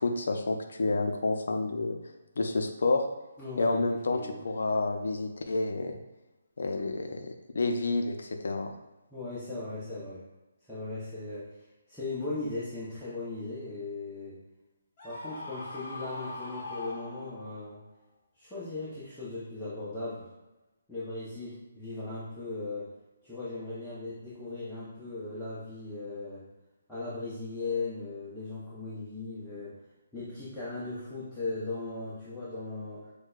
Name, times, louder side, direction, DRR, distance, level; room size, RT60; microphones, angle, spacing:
voice 1, 0.0-2.0 2.4-3.0 3.6-6.0 6.6-8.7, left 3 dB, 70° left, 4 dB, 0.5 m, -29 dB
voice 2, 3.4-3.8 4.1-4.4 9.1-10.2 10.7-11.5 11.9-14.4 15.0-17.8 18.4-20.3 20.9-22.9 23.2-26.5 26.9-29.8 30.1-33.1, left 3 dB, 5° left, -13 dB, 0.8 m, -38 dB
Screaming, 15.0-17.7, left 2 dB, 35° left, 0.9 m, -41 dB
6.2 x 2.2 x 2.4 m, 1.0 s
hypercardioid pair, 160°, 0 cm